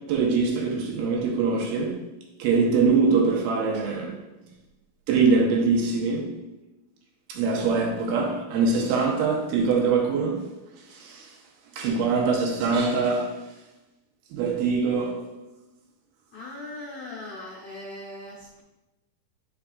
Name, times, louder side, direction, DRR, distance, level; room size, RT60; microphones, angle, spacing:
voice 1, 0.1-2.0 2.4-4.2 5.1-6.4 7.3-10.5 10.9-11.4 11.7-13.4 14.3-15.3, right 4 dB, 85° right, 2.8 m, -23 dB
voice 2, 16.3-18.6, left 2 dB, 65° left, 1.8 m, -39 dB
8.9 x 5.7 x 2.4 m
omnidirectional pair, 4.3 m